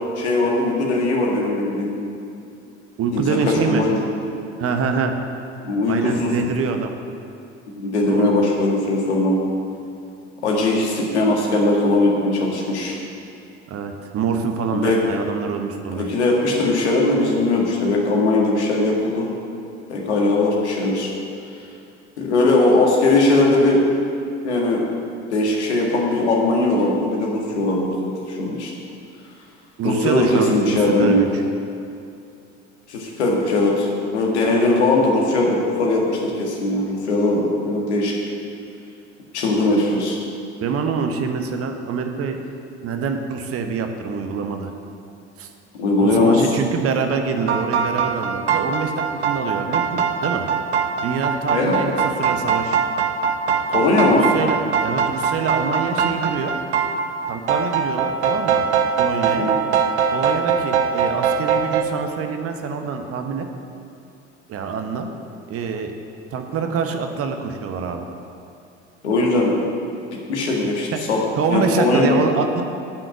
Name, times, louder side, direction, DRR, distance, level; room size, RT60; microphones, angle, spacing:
voice 1, 0.2-1.9 3.1-4.0 5.6-6.3 7.7-9.4 10.4-13.0 14.7-15.0 15.9-19.3 19.9-21.1 22.2-23.8 24.4-24.8 25.3-28.7 29.8-31.2 32.9-38.1 39.3-40.2 45.8-46.6 51.5-51.9 53.7-54.3 59.3-59.6 69.0-69.6 70.3-71.2 71.5-72.1, left 2 dB, 80° left, -2 dB, 1.8 m, -19 dB
voice 2, 3.0-3.8 4.6-5.1 5.9-6.9 8.1-8.3 13.7-16.1 29.8-31.4 40.6-42.4 42.8-44.7 45.4-45.5 46.0-50.5 51.0-52.8 54.1-56.5 57.3-58.6 59.0-59.5 60.1-63.5 64.5-65.1 65.5-65.9 66.3-68.1 70.5-70.6 70.9-72.6, right 5 dB, 45° right, 5 dB, 1.1 m, -25 dB
sound 1, 47.4-61.8, right 6 dB, 80° right, 0.7 m, -22 dB
8.6 x 6.3 x 7.9 m, 2.6 s
figure-of-eight pair, 60°, 34 cm